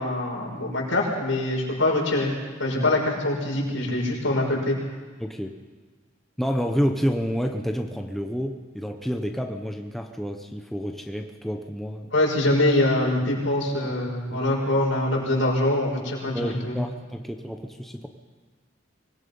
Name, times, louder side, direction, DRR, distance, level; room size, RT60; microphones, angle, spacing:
voice 1, 0.0-2.3 2.6-4.8 12.1-16.8, left 1 dB, 75° left, -2 dB, 6.4 m, -24 dB
voice 2, 5.2-5.5 6.4-12.1 14.1-14.4 16.3-18.1, equal, ahead, 3 dB, 1.0 m, -29 dB
25.0 x 20.0 x 5.6 m, 1.4 s
head